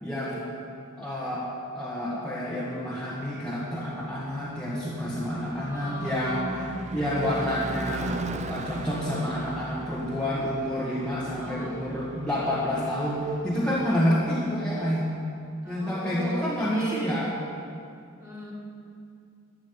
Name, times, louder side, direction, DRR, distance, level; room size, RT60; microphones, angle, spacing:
voice 1, 0.0-0.4 1.0-1.5 1.7-8.2 8.4-15.1 15.7-17.3, equal, 5° left, -8 dB, 1.7 m, -28 dB
Car passing by / Truck / Engine, 4.0-14.2, right 2 dB, 35° right, 0.6 m, -39 dB
voice 2, 5.4-6.8 11.3-11.8 15.6-16.4 16.7-17.2 18.2-18.5, right 1 dB, 15° right, -5 dB, 3.0 m, -38 dB
13.5 x 8.5 x 9.5 m, 2.5 s
head